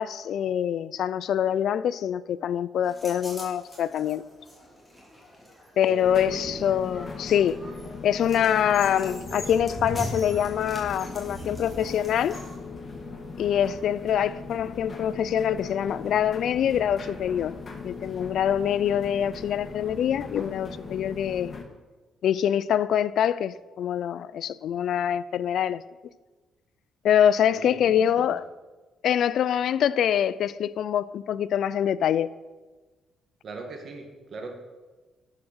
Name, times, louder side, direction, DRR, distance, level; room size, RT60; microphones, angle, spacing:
voice 1, 0.0-4.2 5.8-7.6 8.0-12.4 13.4-17.6 17.8-21.5 22.2-25.8 27.0-28.4 29.0-32.3, left 9 dB, 70° left, 0.4 m, -25 dB
sound 1, 2.8-12.6, equal, 10° left, 2.9 m, -41 dB
voice 2, 5.7-6.6 27.5-28.0 33.4-34.5, right 3 dB, 55° right, 1.8 m, -39 dB
sound 2, 6.0-21.6, left 4 dB, 40° left, 1.5 m, -39 dB
11.5 x 4.9 x 6.2 m
cardioid pair, 90°, 0 cm